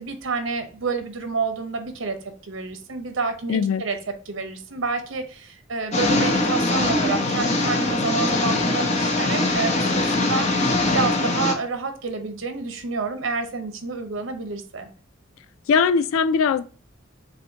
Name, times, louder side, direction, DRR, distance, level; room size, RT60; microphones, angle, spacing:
voice 1, 0.0-2.2 2.4-4.0 4.3-14.9, right 4 dB, 75° right, 0.8 m, -29 dB
voice 2, 3.5-3.8 15.7-16.6, left 6 dB, 90° left, 0.3 m, -20 dB
sound 1, 5.9-11.5, left 2 dB, 35° left, 0.7 m, -22 dB
6.8 x 2.6 x 2.8 m
head